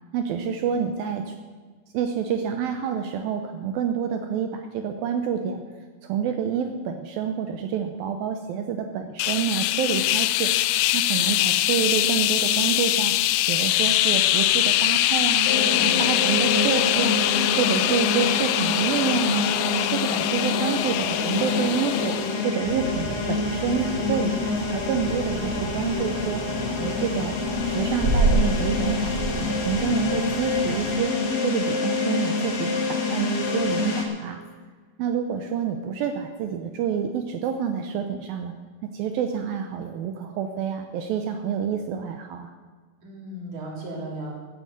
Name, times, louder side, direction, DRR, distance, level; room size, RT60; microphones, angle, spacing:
voice 1, 0.1-1.3 1.9-5.6 6.0-10.5 10.9-13.2 13.5-15.5 15.8-17.3 17.6-19.5 19.9-26.4 26.8-31.1 31.4-34.4 35.0-38.5 38.8-42.5, right 7 dB, 80° right, 6 dB, 2.4 m, -28 dB
sound 1, 9.2-22.5, left 15 dB, 85° left, 2.0 m, -23 dB
voice 2, 15.4-16.3 43.0-44.3, right 1 dB, 50° right, -2 dB, 4.6 m, -36 dB
sound 2, 15.5-34.1, left 3 dB, 60° left, 3.2 m, -27 dB
sound 3, 22.6-30.9, right 2 dB, 20° right, 2.0 m, -29 dB
14.0 x 8.9 x 7.9 m, 1.4 s
omnidirectional pair, 4.6 m